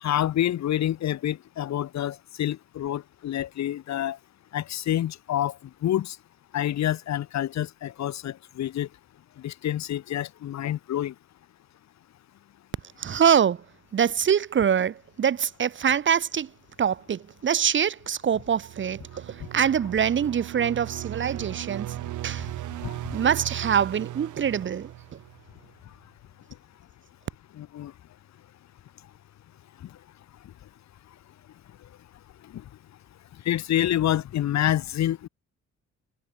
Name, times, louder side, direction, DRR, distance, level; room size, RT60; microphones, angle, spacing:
voice 1, 0.0-4.2 4.5-5.6 5.8-6.2 6.5-8.9 9.4-11.1 22.8-22.9 27.6-27.9 32.5-32.6 33.4-35.3, left 12 dB, 65° left, 1.1 m, -27 dB
voice 2, 13.0-13.6 13.9-16.5 16.8-22.0 22.2-22.5 23.1-24.9, right 8 dB, 40° right, 0.8 m, -24 dB
sound 1, 18.3-25.7, right 14 dB, 85° right, 1.1 m, -37 dB
cardioid pair, 125°, 30 cm